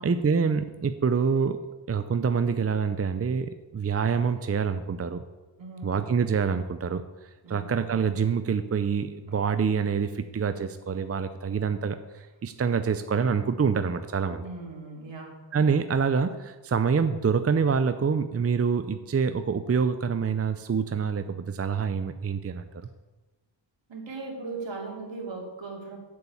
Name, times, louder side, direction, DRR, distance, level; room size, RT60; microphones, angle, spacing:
voice 1, 0.0-1.6 1.9-5.2 5.8-14.4 15.5-22.9, right 6 dB, 30° right, 10 dB, 0.6 m, -26 dB
voice 2, 5.6-6.1 7.4-7.8 14.3-15.3 23.9-26.0, right 3 dB, 75° right, 0 dB, 3.0 m, -38 dB
8.5 x 7.1 x 8.5 m, 1.1 s
wide cardioid pair, 105°, 46 cm